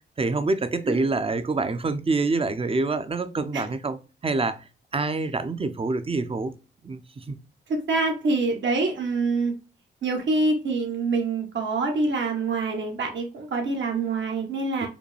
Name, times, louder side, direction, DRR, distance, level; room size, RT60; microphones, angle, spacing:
voice 1, 0.2-4.6 4.9-6.5 6.8-7.3 14.8-14.9, right 3 dB, 30° right, 0.6 m, -26 dB
voice 2, 7.7-9.5 10.0-14.9, right 3 dB, 65° right, 1.3 m, -25 dB
5.0 x 2.2 x 3.1 m
cardioid pair, 60°, 20 cm